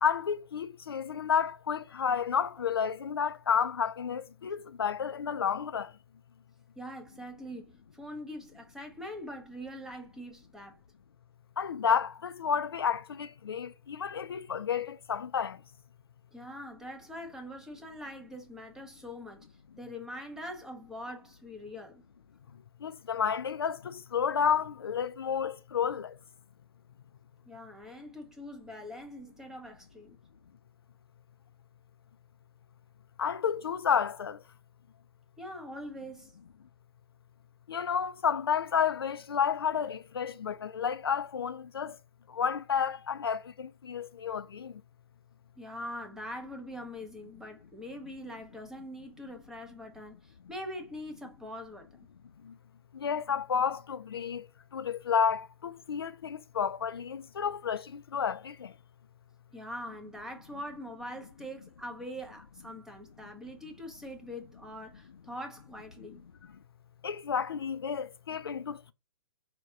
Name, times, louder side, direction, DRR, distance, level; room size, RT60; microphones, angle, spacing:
voice 1, 0.0-5.9 11.6-15.6 22.8-26.1 33.2-34.4 37.7-42.0 42.3-44.7 52.9-54.5 54.7-58.7 67.0-68.9, left 7 dB, 60° left, 0.4 m, -31 dB
voice 2, 6.8-10.8 16.3-19.5 19.8-22.0 27.4-30.2 35.4-36.4 45.6-51.9 59.5-66.2, equal, 5° right, 0.6 m, -43 dB
5.1 x 2.3 x 3.6 m
figure-of-eight pair, 120°, 14 cm